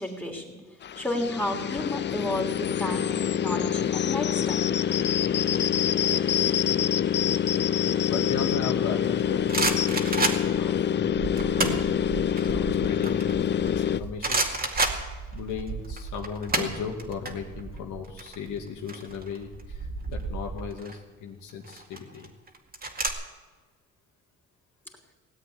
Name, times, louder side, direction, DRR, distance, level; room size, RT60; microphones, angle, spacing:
voice 1, 0.0-4.7, left 1 dB, 5° left, 0 dB, 3.2 m, -32 dB
sound 1, 0.8-14.0, left 9 dB, 35° left, 0.5 m, -26 dB
voice 2, 7.7-11.0 12.5-14.5 15.3-22.3, left 6 dB, 85° left, 3 dB, 2.2 m, -36 dB
sound 2, 9.0-10.7 11.3-11.9 12.3-13.8 14.2-15.6 15.8-17.3 17.6-17.8 18.0-19.6 20.6-21.0 21.6-23.1, right 3 dB, 30° right, 2.3 m, -28 dB
sound 3, 9.2-20.7, right 4 dB, 55° right, 2.9 m, -39 dB
18.0 x 8.1 x 9.4 m, 1.3 s
cardioid pair, 90°, 30 cm